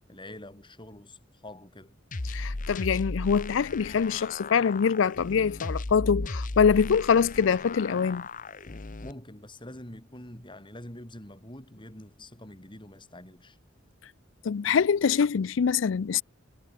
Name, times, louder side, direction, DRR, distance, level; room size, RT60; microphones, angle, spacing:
voice 1, 0.1-2.0 9.0-13.6, left 1 dB, 25° left, 5.5 m, -45 dB
sound 1, 2.1-9.1, left 2 dB, 45° left, 1.0 m, -36 dB
voice 2, 2.3-8.3 14.4-16.2, left 6 dB, 75° left, 0.4 m, -24 dB
head